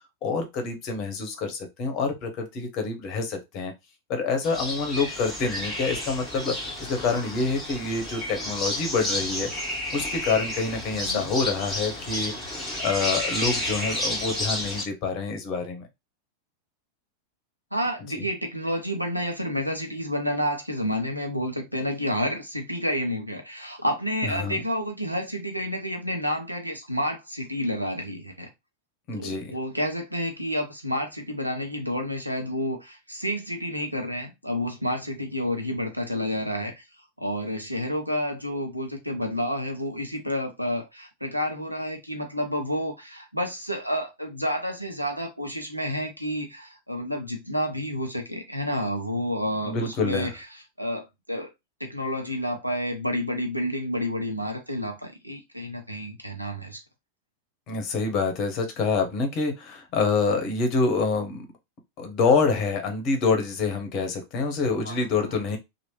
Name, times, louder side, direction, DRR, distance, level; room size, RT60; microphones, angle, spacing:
voice 1, 0.2-3.7 4.1-9.5 9.9-12.5 12.8-15.9 18.1-18.2 24.2-24.6 29.1-29.5 49.6-50.3 57.7-61.5 62.0-65.6, left 4 dB, 40° left, 1.0 m, -27 dB
sound 1, 4.4-14.8, left 1 dB, ahead, 1.6 m, -31 dB
voice 2, 10.9-11.3 17.7-28.5 29.1-36.9 37.2-50.4 50.8-51.5 51.8-56.8 64.8-65.4, equal, 90° right, 0.7 m, -30 dB
3.0 x 2.5 x 3.0 m
figure-of-eight pair, 90°, 0 cm